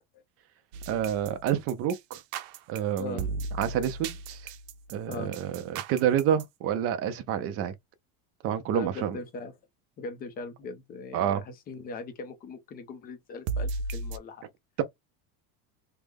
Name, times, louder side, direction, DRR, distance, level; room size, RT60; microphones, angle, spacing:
sound 1, 0.7-6.4 13.5-14.2, right 4 dB, 80° right, 0.6 m, -35 dB
voice 1, 0.9-2.2 2.7-3.3 3.6-4.4 4.9-7.7 8.4-9.2 11.1-11.4, right 9 dB, 35° right, 0.5 m, -28 dB
voice 2, 3.0-3.3 5.1-5.4 8.7-9.5 10.0-14.4, left 3 dB, 20° left, 0.4 m, -40 dB
3.3 x 2.1 x 3.4 m
supercardioid pair, 150°, 43 cm